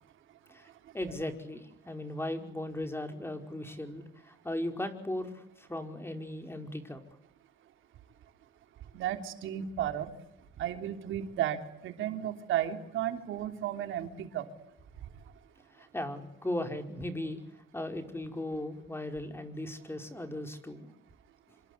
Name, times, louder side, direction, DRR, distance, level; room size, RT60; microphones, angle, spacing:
voice 1, 0.9-7.0 15.8-17.4 17.7-20.9, left 1 dB, 10° left, 6 dB, 5.1 m, -37 dB
voice 2, 8.9-10.1 10.6-14.4, right 11 dB, 80° right, 6 dB, 3.3 m, -33 dB
27.5 x 26.5 x 8.3 m, 0.76 s
cardioid pair, 90°, 20 cm